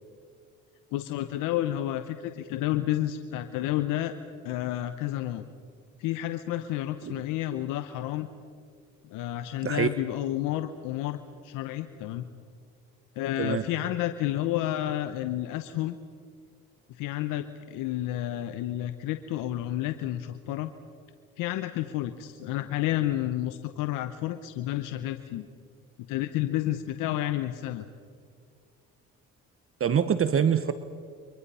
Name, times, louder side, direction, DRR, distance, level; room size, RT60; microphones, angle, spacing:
voice 1, 0.9-4.1 4.4-5.4 6.0-8.3 9.0-12.2 13.2-15.9 16.9-20.7 21.4-25.4 26.1-27.9, left 13 dB, 85° left, 10 dB, 1.0 m, -30 dB
voice 2, 29.8-30.7, right 8 dB, 45° right, 12 dB, 1.1 m, -25 dB
29.0 x 24.0 x 5.6 m, 2.1 s
supercardioid pair, 70°, 31 cm